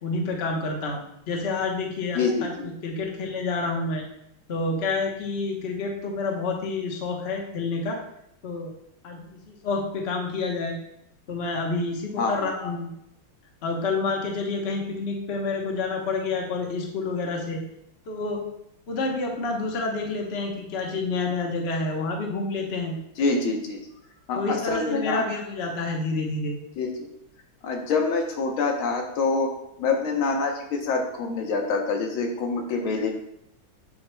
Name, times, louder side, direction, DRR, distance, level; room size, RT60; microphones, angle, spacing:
voice 1, 0.0-2.5 2.8-4.0 4.5-8.0 8.4-8.7 9.0-10.8 11.3-12.9 13.6-17.6 18.1-18.4 18.9-23.0 24.3-26.6, left 3 dB, 40° left, 1 dB, 1.0 m, -28 dB
voice 2, 2.2-2.7 12.2-12.7 23.2-23.8 24.3-25.2 26.8-26.9 27.6-29.5 29.8-33.1, left 4 dB, 85° left, 2 dB, 1.8 m, -26 dB
7.5 x 7.1 x 2.2 m, 0.77 s
omnidirectional pair, 2.2 m